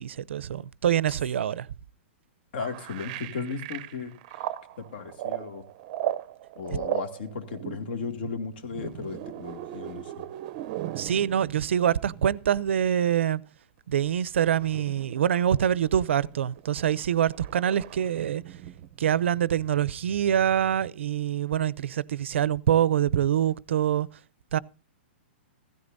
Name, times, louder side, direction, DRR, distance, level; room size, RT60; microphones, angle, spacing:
voice 1, 0.0-1.7 10.9-13.4 13.9-18.4 19.0-24.1 24.5-24.6, right 10 dB, 80° right, 0.5 m, -25 dB
voice 2, 2.5-4.1 4.8-5.7 6.6-10.1, left 5 dB, 60° left, 2.2 m, -35 dB
sound 1, 2.6-12.9 14.2-20.9, right 13 dB, 35° right, 0.6 m, -38 dB
16.0 x 13.0 x 2.6 m
hypercardioid pair, 160°, 6 cm